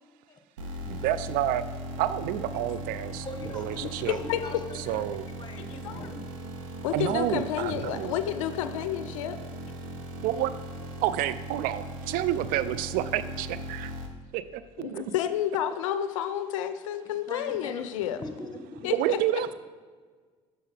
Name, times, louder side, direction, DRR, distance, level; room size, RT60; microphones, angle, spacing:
sound 1, 0.6-14.1, equal, 90° right, 0.7 m, -39 dB
voice 1, 0.8-1.6 2.0-3.3 3.5-4.2 4.7-5.3 6.9-8.2 10.2-10.5 11.0-13.9 14.3-15.0 18.9-19.5, right 12 dB, 65° right, 14 dB, 0.4 m, -29 dB
voice 2, 3.2-6.3 17.3-17.8 18.2-18.9, left 2 dB, 25° left, 5 dB, 1.1 m, -41 dB
voice 3, 6.8-9.4 14.8-18.2 18.8-19.2, left 10 dB, 85° left, 10 dB, 0.4 m, -30 dB
6.5 x 6.4 x 3.3 m, 1.5 s
hypercardioid pair, 65°, 16 cm